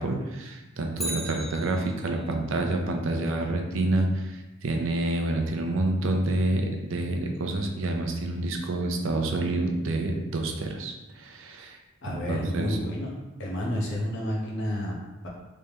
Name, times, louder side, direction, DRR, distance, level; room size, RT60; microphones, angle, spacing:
voice 1, 0.0-11.8 12.3-12.8, right 2 dB, 65° right, 3 dB, 0.5 m, -28 dB
Bicycle, 0.9-2.3 10.6-10.7, right 1 dB, ahead, 0.5 m, -36 dB
voice 2, 12.0-13.1 13.4-15.3, equal, 60° left, -3 dB, 0.9 m, -30 dB
3.4 x 3.2 x 2.9 m, 1.1 s
head